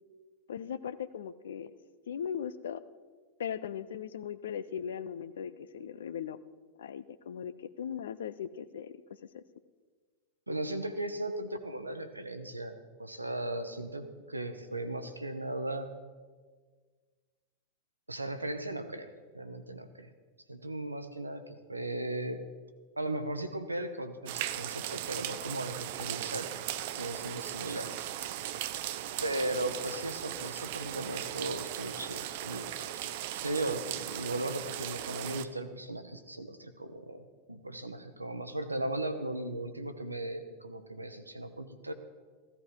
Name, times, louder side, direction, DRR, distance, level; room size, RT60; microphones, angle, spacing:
voice 1, 0.5-1.7 2.1-2.8 3.4-6.4 6.8-9.0 9.3-9.4, left 8 dB, 60° left, 16 dB, 0.6 m, -38 dB
voice 2, 10.5-15.9 18.1-19.1 19.3-20.1 20.5-22.4 23.0-26.5 27.0-28.1 29.2-33.1 33.4-41.9, right 1 dB, 85° right, 9 dB, 1.0 m, -37 dB
sound 1, 24.3-35.4, right 12 dB, 50° right, 0.6 m, -38 dB
15.5 x 14.5 x 4.8 m, 1.5 s
figure-of-eight pair, 90°, 0 cm